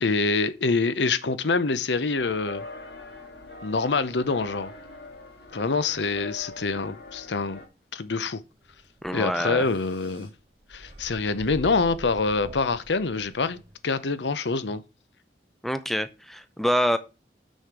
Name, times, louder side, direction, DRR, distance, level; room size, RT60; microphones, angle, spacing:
voice 1, 0.0-2.6 3.6-4.7 5.5-7.6 7.9-8.4 9.1-10.3 10.7-13.6 13.8-14.8, left 4 dB, 90° left, 0.8 m, -25 dB
sound 1, 2.1-7.7, left 2 dB, 70° left, 1.8 m, -43 dB
sound 2, 8.6-13.8, right 1 dB, 30° right, 1.9 m, -46 dB
voice 2, 9.0-9.7 15.6-17.0, equal, ahead, 0.6 m, -26 dB
6.5 x 6.4 x 5.0 m
head